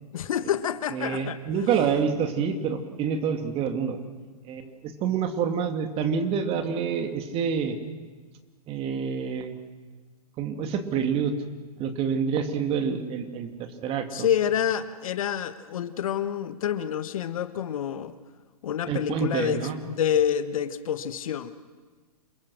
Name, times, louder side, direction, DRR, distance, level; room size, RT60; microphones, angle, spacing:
voice 1, 0.1-1.4 14.1-18.1 18.6-21.5, left 9 dB, 60° left, 11 dB, 1.5 m, -28 dB
voice 2, 0.9-4.0 4.5-7.8 8.7-9.6 10.4-11.3 11.8-14.3 18.9-19.8, right 6 dB, 30° right, 6 dB, 2.5 m, -27 dB
28.0 x 21.5 x 6.5 m, 1.4 s
hypercardioid pair, 120°, 20 cm